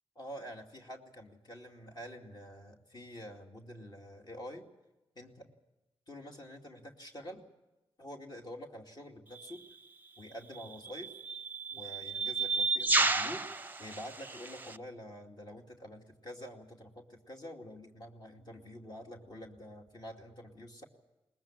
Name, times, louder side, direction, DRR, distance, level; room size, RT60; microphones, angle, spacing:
voice 1, 0.2-4.6 5.2-5.5 6.1-7.4 8.0-9.6 10.2-11.1 11.7-13.4 13.8-20.9, equal, 45° left, 1 dB, 2.5 m, -47 dB
sound 1, 9.4-9.5 10.6-14.8, right 3 dB, 20° right, 0.7 m, -32 dB
22.0 x 20.5 x 7.4 m, 1.0 s
wide cardioid pair, 110°, 10 cm